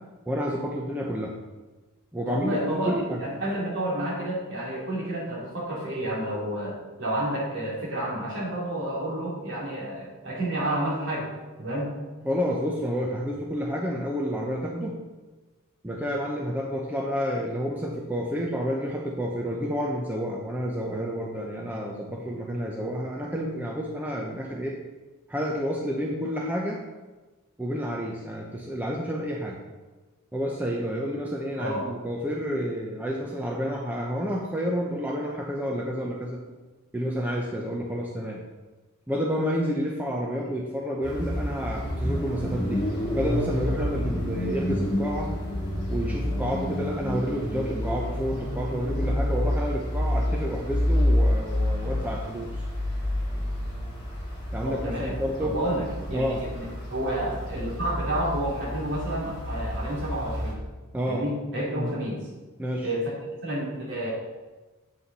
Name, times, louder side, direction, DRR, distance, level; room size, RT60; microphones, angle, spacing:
voice 1, 0.3-1.3 2.1-3.2 12.2-14.9 15.8-24.7 25.3-26.8 27.6-29.6 30.3-36.4 36.9-38.4 39.1-42.8 43.1-45.3 45.9-52.6 54.5-55.5 56.1-56.4 60.9-61.2 61.7-61.9 62.6-62.9, equal, 10° right, -2 dB, 0.8 m, -29 dB
voice 2, 2.3-2.9 3.2-11.3 11.6-11.9 31.5-31.9 54.6-56.3 56.5-60.6 61.1-62.2 62.8-63.1 63.4-64.1, right 1 dB, 55° right, -5 dB, 3.2 m, -30 dB
sound 1, 41.0-60.5, left 1 dB, 20° left, 2.9 m, -29 dB
8.5 x 7.8 x 4.2 m, 1.2 s
head